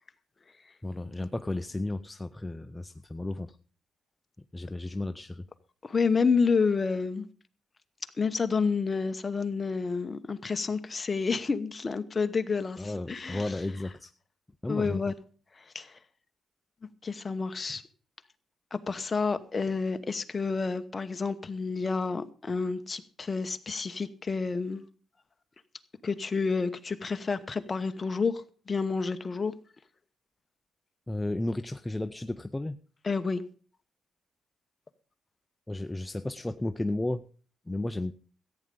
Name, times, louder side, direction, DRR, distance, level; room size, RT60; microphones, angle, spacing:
voice 1, 0.8-3.6 4.5-5.4 12.8-14.1 14.6-15.0 31.1-32.8 35.7-37.2 37.7-38.1, left 2 dB, 10° left, 0.5 m, -33 dB
voice 2, 5.8-7.3 8.2-13.5 14.7-15.1 15.6-16.0 17.0-17.8 18.7-24.8 26.0-29.5 33.0-33.4, left 4 dB, 25° left, 1.0 m, -29 dB
14.5 x 8.9 x 5.3 m
cardioid pair, 120°, 0 cm